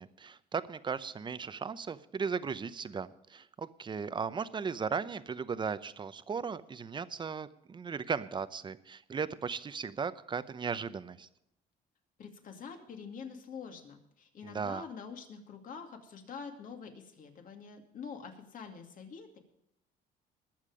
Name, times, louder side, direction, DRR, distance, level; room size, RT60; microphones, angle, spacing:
voice 1, 0.0-11.3 14.4-14.9, right 5 dB, 25° right, 14 dB, 0.7 m, -36 dB
voice 2, 12.2-19.4, left 6 dB, 55° left, 4 dB, 2.5 m, -46 dB
20.5 x 7.4 x 5.0 m, 0.82 s
cardioid pair, 110°, 17 cm